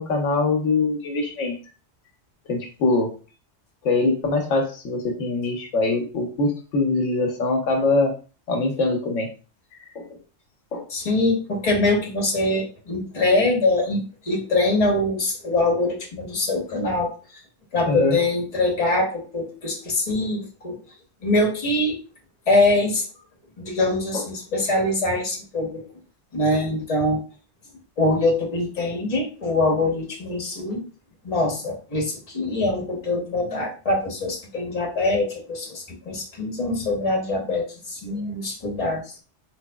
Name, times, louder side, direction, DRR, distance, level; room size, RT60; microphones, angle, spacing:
voice 1, 0.0-1.6 2.5-3.1 3.8-8.1 8.5-9.3 9.7-10.1 10.7-10.9 17.8-18.2 24.1-24.2, left 3 dB, 80° left, 4 dB, 1.1 m, -23 dB
voice 2, 10.9-17.4 17.7-20.8 21.2-22.0 22.5-23.0 23.6-25.8 26.3-27.2 28.0-30.8 31.2-39.0, left 2 dB, 30° left, 1 dB, 1.0 m, -23 dB
3.9 x 3.2 x 2.2 m, 0.35 s
omnidirectional pair, 1.3 m